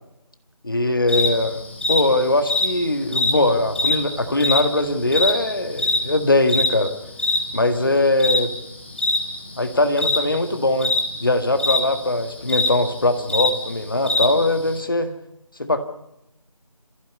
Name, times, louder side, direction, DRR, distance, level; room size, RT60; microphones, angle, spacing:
voice 1, 0.6-1.6 1.9-6.9 7.5-8.5 9.6-10.9 11.2-15.1 15.6-15.8, left 2 dB, 35° left, 8 dB, 1.7 m, -21 dB
sound 1, 1.1-14.8, left 2 dB, 20° left, 1.7 m, -23 dB
27.5 x 15.0 x 8.2 m, 0.87 s
figure-of-eight pair, 170°, 19 cm